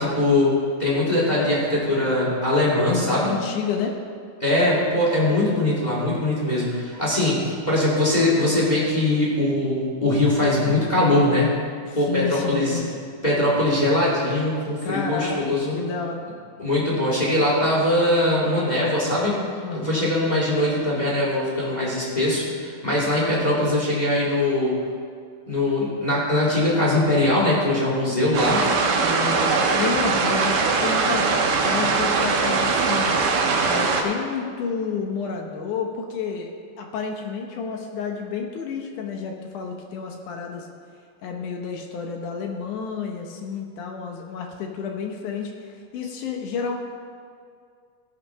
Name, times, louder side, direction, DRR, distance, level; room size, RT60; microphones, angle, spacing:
voice 1, 0.0-3.3 4.4-11.5 12.0-12.8 13.2-15.8 16.6-19.4 19.7-24.8 25.5-28.6, left 1 dB, 15° left, -6 dB, 2.2 m, -21 dB
voice 2, 3.2-4.0 11.9-12.9 14.8-15.4 15.7-16.2 19.6-20.1 29.0-31.3 31.6-33.2 33.6-36.5 36.8-40.7 41.2-46.8, left 5 dB, 75° left, 2 dB, 2.4 m, -30 dB
sound 1, 28.3-34.0, right 4 dB, 80° right, 2.6 m, -21 dB
16.0 x 5.8 x 5.6 m, 2.2 s
omnidirectional pair, 3.7 m